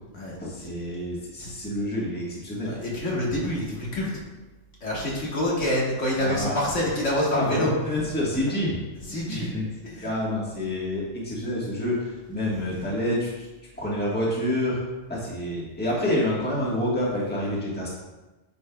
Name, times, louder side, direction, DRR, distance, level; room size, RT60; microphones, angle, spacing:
voice 1, 0.4-2.8 6.2-6.5 7.3-8.8 9.3-9.7 10.0-13.5 13.8-14.8 15.1-17.9, left 1 dB, 10° left, -5 dB, 1.4 m, -28 dB
voice 2, 2.6-4.1 4.8-7.7 9.1-9.5 9.8-10.1, left 1 dB, 70° left, -4 dB, 1.9 m, -26 dB
9.1 x 5.3 x 2.3 m, 1.1 s
omnidirectional pair, 1.3 m